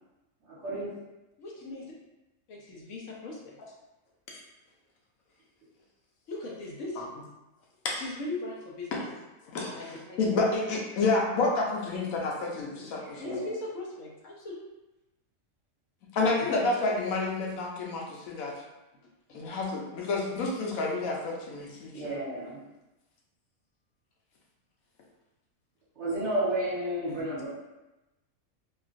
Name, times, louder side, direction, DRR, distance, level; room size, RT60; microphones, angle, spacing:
voice 1, 1.4-1.9 2.5-3.6 6.3-7.1 8.0-9.0 9.7-10.2 13.1-14.6 16.2-16.4 19.3-19.4, left 2 dB, 70° left, -3 dB, 0.9 m, -39 dB
voice 2, 9.5-13.2 16.1-18.5 19.3-22.1 27.1-27.2, left 3 dB, 90° left, -1 dB, 1.1 m, -29 dB
voice 3, 13.0-13.5 21.9-22.6 26.0-27.5, right 1 dB, 60° right, -8 dB, 1.3 m, -31 dB
2.9 x 2.4 x 2.5 m, 1.0 s
omnidirectional pair, 1.4 m